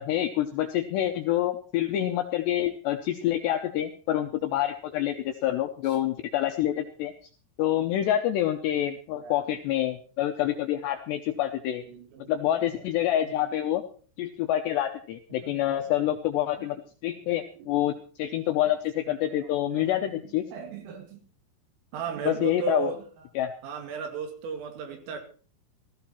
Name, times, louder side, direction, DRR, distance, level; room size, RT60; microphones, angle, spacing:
voice 1, 0.0-7.1 7.6-11.8 12.3-13.8 14.2-16.8 17.0-20.5 22.3-22.9 23.4-23.5, left 12 dB, 80° left, 5 dB, 2.6 m, -27 dB
voice 2, 9.1-9.5 11.8-12.9 13.2-13.5 15.3-16.1 16.6-16.7 17.2-17.8 19.3-20.1 20.5-21.2 21.9-23.0 23.6-25.2, right 6 dB, 75° right, 5 dB, 5.0 m, -37 dB
16.0 x 14.5 x 4.5 m, 0.41 s
omnidirectional pair, 5.9 m